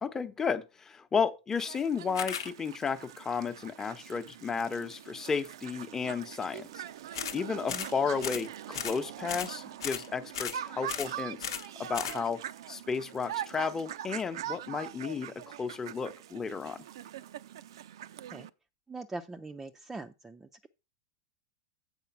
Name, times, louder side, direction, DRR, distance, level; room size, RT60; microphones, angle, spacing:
voice 1, 0.0-6.8 7.3-11.4 11.8-12.4 12.7-16.8, left 5 dB, 20° left, 0.9 m, -33 dB
sound 1, 1.5-18.5, right 11 dB, 75° right, 0.5 m, -43 dB
sound 2, 2.1-2.5 7.1-7.4 7.7-7.9 8.2-8.5 8.7-9.0 9.3-9.5 9.8-10.1 10.3-10.6 10.9-11.1 11.4-11.7 11.9-12.2, left 8 dB, 85° left, 1.0 m, -36 dB
voice 2, 18.9-20.7, right 3 dB, 15° right, 0.5 m, -42 dB
8.2 x 4.8 x 5.9 m
hypercardioid pair, 115°, 3 cm